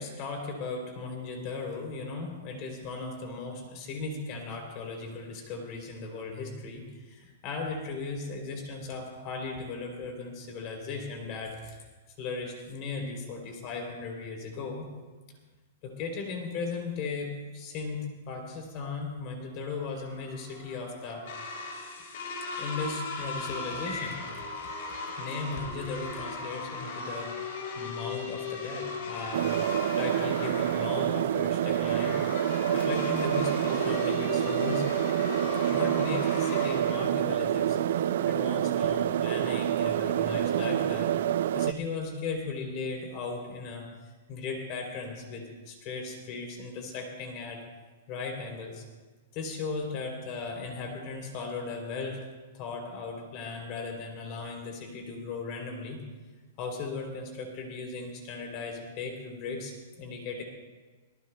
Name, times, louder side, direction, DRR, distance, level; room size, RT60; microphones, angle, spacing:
voice 1, 0.0-11.8 12.2-14.9 15.8-21.3 22.6-24.2 25.2-29.5 29.9-32.2 32.7-34.9 35.7-41.1 41.5-43.9 44.3-47.6 48.1-48.8 49.3-52.3 52.5-56.0 56.6-60.4, left 4 dB, 35° left, 2 dB, 3.0 m, -37 dB
sound 1, 19.9-37.1, left 4 dB, 55° left, 5.7 m, -38 dB
sound 2, 29.3-41.7, right 10 dB, 60° right, 0.4 m, -27 dB
23.5 x 18.5 x 2.2 m, 1.3 s
hypercardioid pair, 165°, 0 cm